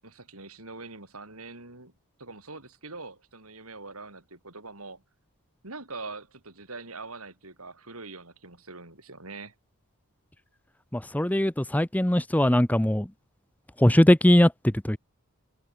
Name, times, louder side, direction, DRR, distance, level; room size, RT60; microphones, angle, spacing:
voice 1, 0.0-1.9 2.2-5.0 5.6-9.5, right 3 dB, 75° right, 7.3 m, -43 dB
voice 2, 10.9-13.1 13.8-15.0, left 1 dB, 5° left, 0.7 m, -21 dB
head